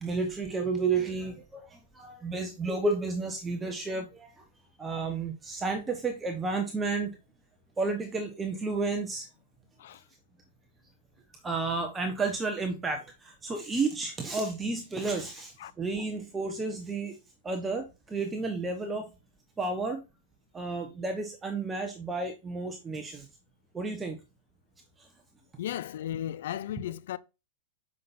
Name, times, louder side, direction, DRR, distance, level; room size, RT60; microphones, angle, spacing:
voice 1, 0.0-4.4 4.8-7.1 7.8-9.3 11.4-17.2 17.4-19.1 19.6-20.0 20.5-23.3 23.7-24.2 25.0-25.1, right 3 dB, 15° right, 1.0 m, -32 dB
voice 2, 25.6-27.2, left 11 dB, 70° left, 0.4 m, -35 dB
7.6 x 5.7 x 2.6 m
hypercardioid pair, 125°, 0 cm